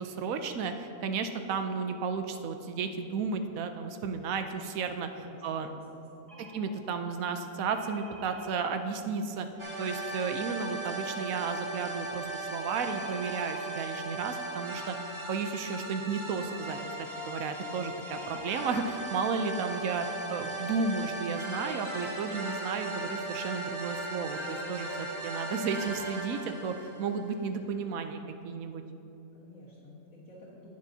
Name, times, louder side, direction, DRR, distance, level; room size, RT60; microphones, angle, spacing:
voice 1, 0.0-5.7 6.5-9.5 9.8-15.0 15.3-28.8, right 5 dB, 70° right, 7 dB, 0.9 m, -33 dB
voice 2, 5.2-6.6 29.3-30.7, left 1 dB, 50° left, -8 dB, 1.8 m, -52 dB
sound 1, 6.3-6.6 7.7-8.6 12.9-13.8 18.1-18.8 19.6-19.7 19.9-20.1, right 1 dB, 20° left, 2.4 m, -50 dB
sound 2, 9.6-27.4, right 2 dB, 25° right, 0.6 m, -37 dB
18.0 x 6.6 x 2.7 m, 2.8 s
omnidirectional pair, 1.7 m